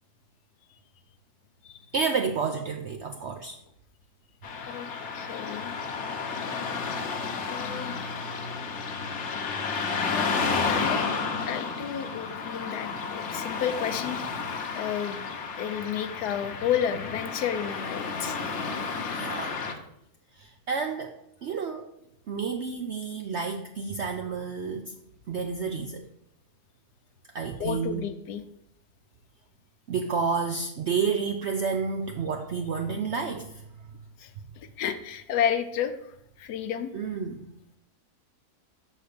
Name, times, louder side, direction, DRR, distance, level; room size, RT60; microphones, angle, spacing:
voice 1, 1.9-3.6 19.2-19.6 20.4-21.9 22.3-24.9 25.3-26.0 27.3-28.1 29.9-33.6 36.9-37.5, right 5 dB, 65° right, 5 dB, 0.7 m, -30 dB
Car passing by / Traffic noise roadway noise, 4.4-19.7, left 5 dB, 55° left, 1.0 m, -32 dB
voice 2, 4.6-5.8 7.4-8.0 10.0-10.3 10.7-14.5 14.7-18.4 27.6-28.4 34.2-35.9 36.4-36.9, left 9 dB, 80° left, 8 dB, 1.2 m, -32 dB
6.6 x 4.3 x 6.6 m, 0.74 s
omnidirectional pair, 1.7 m